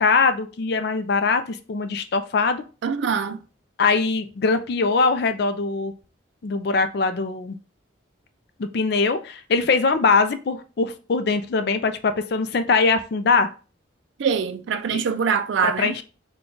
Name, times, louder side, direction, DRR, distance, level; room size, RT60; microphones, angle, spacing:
voice 1, 0.0-2.6 3.8-5.9 6.4-7.6 8.6-13.5 14.9-15.0 15.6-16.0, left 4 dB, 55° left, 0.4 m, -22 dB
voice 2, 2.8-3.4 14.2-15.9, right 6 dB, 70° right, 0.3 m, -23 dB
3.6 x 2.3 x 3.8 m
head